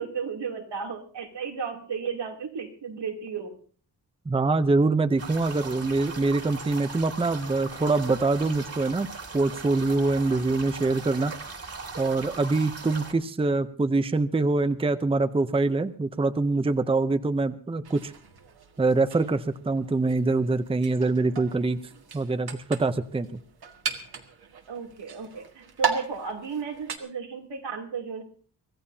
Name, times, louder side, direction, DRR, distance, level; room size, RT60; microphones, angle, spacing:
voice 1, 0.0-3.5 24.7-28.2, right 6 dB, 90° right, 2 dB, 3.0 m, -34 dB
voice 2, 4.3-9.1 9.3-11.3 12.0-18.1 18.8-21.8 22.1-23.4, right 3 dB, 15° right, 11 dB, 0.6 m, -24 dB
sound 1, 5.2-13.1, right 4 dB, 35° right, 2.3 m, -39 dB
sound 2, 17.8-27.0, right 6 dB, 65° right, 2.0 m, -37 dB
25.0 x 16.0 x 2.8 m, 0.43 s
wide cardioid pair, 170°, 41 cm